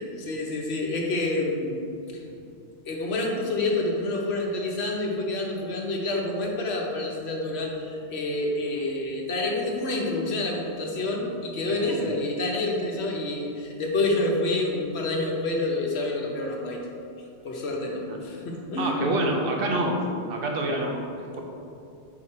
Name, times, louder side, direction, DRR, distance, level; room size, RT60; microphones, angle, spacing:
voice 1, 0.0-2.2 2.9-16.8 17.4-19.1, left 2 dB, 65° left, -1 dB, 1.2 m, -28 dB
voice 2, 11.7-12.1 18.1-18.2 18.8-20.0 20.3-21.4, right 1 dB, 55° right, 1 dB, 1.0 m, -27 dB
6.3 x 4.9 x 4.3 m, 2.6 s
omnidirectional pair, 1.2 m